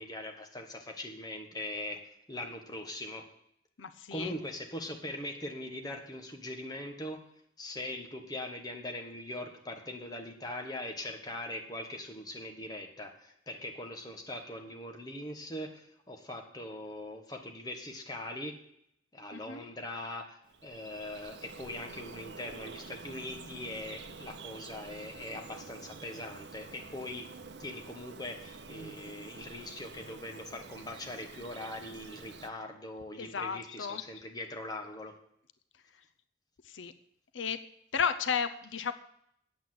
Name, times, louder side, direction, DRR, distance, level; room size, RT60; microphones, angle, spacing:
voice 1, 0.0-3.3 4.1-7.2 7.6-18.6 19.1-27.3 27.6-35.1, left 1 dB, 20° left, 3 dB, 1.5 m, -41 dB
voice 2, 3.8-4.3 19.3-19.6 33.2-34.0 36.7-36.9 37.3-37.6 37.9-38.9, left 6 dB, 90° left, 12 dB, 0.7 m, -33 dB
Bird vocalization bird call bird song, 20.4-32.5, right 4 dB, 65° right, 0.8 m, -48 dB
8.6 x 8.3 x 7.8 m, 0.71 s
head